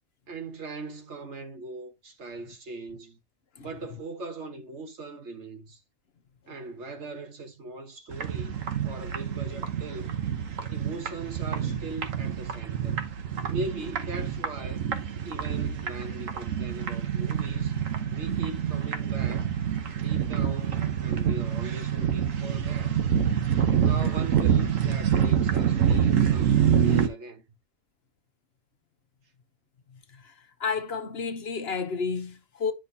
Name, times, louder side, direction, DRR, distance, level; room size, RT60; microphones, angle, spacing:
voice 1, 0.3-3.2 3.6-5.8 6.5-8.6 8.8-10.1 10.7-13.0 13.5-14.8 15.2-17.8 18.1-19.6 20.0-23.0 23.8-27.4, right 3 dB, 65° right, 1.6 m, -40 dB
sound 1, 8.1-27.1, right 8 dB, 90° right, 1.4 m, -26 dB
voice 2, 30.6-32.7, left 5 dB, 55° left, 1.0 m, -31 dB
10.5 x 6.0 x 2.7 m
omnidirectional pair, 1.3 m